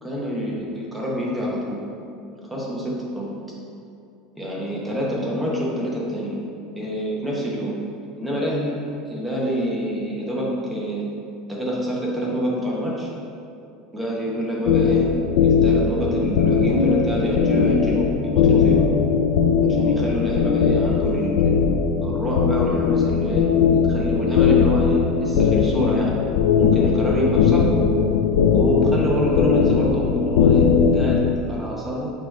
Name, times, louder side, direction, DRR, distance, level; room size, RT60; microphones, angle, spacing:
voice 1, 0.0-1.8 2.5-3.3 4.3-6.4 6.8-7.8 8.2-8.8 9.1-11.0 11.5-13.1 13.9-15.1 15.4-18.9 19.6-21.5 22.0-23.5 23.9-26.2 26.6-27.7 28.5-31.2 31.5-32.1, equal, 5° right, -4 dB, 1.0 m, -26 dB
sound 1, 14.7-31.3, left 6 dB, 85° left, 0.4 m, -19 dB
6.7 x 3.1 x 4.6 m, 2.5 s
cardioid pair, 160°, 0 cm